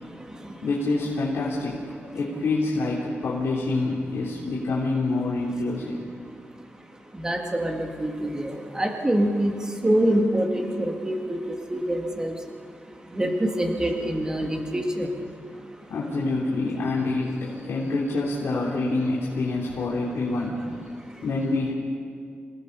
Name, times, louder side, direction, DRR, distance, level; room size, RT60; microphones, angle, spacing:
voice 1, 0.0-0.7 6.2-15.8 20.9-21.2, right 1 dB, 15° right, 2 dB, 2.1 m, -27 dB
voice 2, 0.6-6.0 15.9-20.6 21.2-21.7, left 2 dB, 70° left, -6 dB, 3.4 m, -26 dB
27.5 x 17.5 x 5.5 m, 2.2 s
wide cardioid pair, 125°, 5 cm